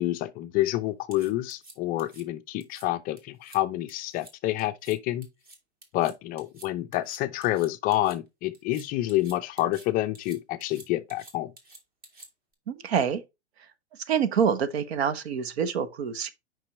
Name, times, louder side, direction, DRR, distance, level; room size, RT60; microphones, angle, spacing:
voice 1, 0.0-5.3 5.9-11.5, left 15 dB, 25° left, 0.4 m, -28 dB
sound 1, 1.1-2.2 2.6-2.9 3.2-3.6 3.9-4.3 4.6-5.0 5.2-8.2 8.5-9.9 10.2-12.5, right 2 dB, 25° right, 2.3 m, -50 dB
voice 2, 12.7-13.2 14.1-16.3, right 7 dB, 65° right, 1.1 m, -26 dB
5.7 x 5.4 x 4.1 m
hypercardioid pair, 110°, 33 cm